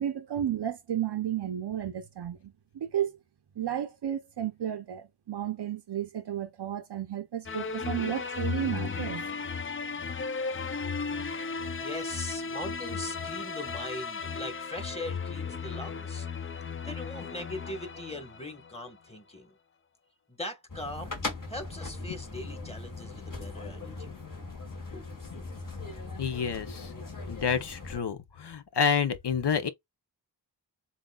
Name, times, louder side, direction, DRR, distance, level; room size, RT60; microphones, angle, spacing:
voice 1, 0.0-3.1 3.6-9.3, right 10 dB, 65° right, 0.7 m, -33 dB
sound 1, 7.5-18.8, left 5 dB, 30° left, 0.5 m, -35 dB
voice 2, 11.8-16.3 16.8-19.5 20.3-21.2 21.5-24.2 24.9-25.1, left 1 dB, 15° left, 1.4 m, -40 dB
sound 2, 20.7-28.0, left 3 dB, 45° left, 1.7 m, -39 dB
voice 3, 26.2-26.9 27.3-29.7, left 6 dB, 65° left, 0.9 m, -28 dB
7.2 x 2.6 x 2.3 m
wide cardioid pair, 100°, 43 cm